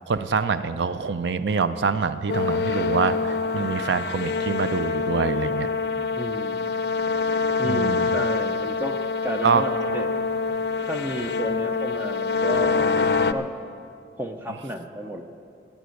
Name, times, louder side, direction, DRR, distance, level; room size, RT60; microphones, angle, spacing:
voice 1, 0.1-5.7 7.6-8.1 9.4-10.0, right 5 dB, 80° right, 13 dB, 0.4 m, -25 dB
sound 1, 2.3-13.3, left 4 dB, 65° left, 0.5 m, -25 dB
voice 2, 6.2-6.7 7.6-10.1 10.8-13.5 14.2-15.2, equal, 10° right, 5 dB, 0.5 m, -32 dB
15.0 x 9.2 x 6.4 m, 2.5 s
head